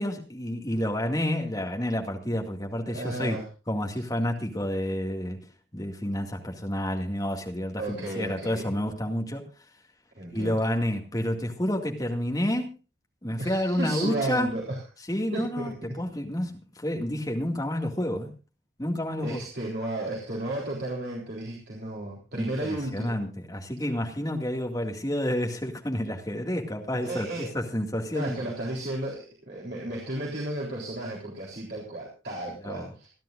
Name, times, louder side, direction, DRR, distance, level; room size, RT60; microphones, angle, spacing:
voice 1, 0.0-3.4 3.7-5.4 5.7-9.4 10.3-12.7 13.2-14.5 15.1-18.3 18.8-19.4 22.4-28.4 32.6-32.9, equal, 20° left, 2 dB, 2.1 m, -29 dB
voice 2, 2.8-3.5 7.8-8.7 10.1-10.6 13.4-14.8 15.3-16.0 19.2-23.2 27.0-27.5 28.1-33.1, right 1 dB, 60° right, -3 dB, 3.6 m, -33 dB
27.0 x 11.0 x 2.5 m, 0.31 s
head